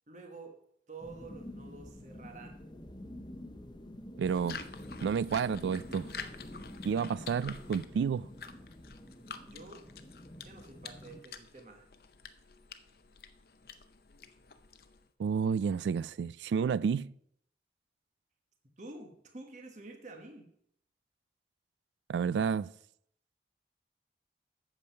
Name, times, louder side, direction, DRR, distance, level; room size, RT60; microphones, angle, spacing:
voice 1, 0.1-0.6 0.9-2.6 9.4-9.8 10.4-11.9 18.8-20.5, right 3 dB, 45° right, 1.2 m, -49 dB
sound 1, 1.0-11.2, left 1 dB, 25° left, 0.7 m, -48 dB
sound 2, 4.2-15.1, left 6 dB, 60° left, 0.6 m, -49 dB
voice 2, 4.2-4.6 5.0-6.1 6.8-8.3 15.2-17.1 22.1-22.7, right 6 dB, 85° right, 0.3 m, -30 dB
8.5 x 7.2 x 5.6 m
head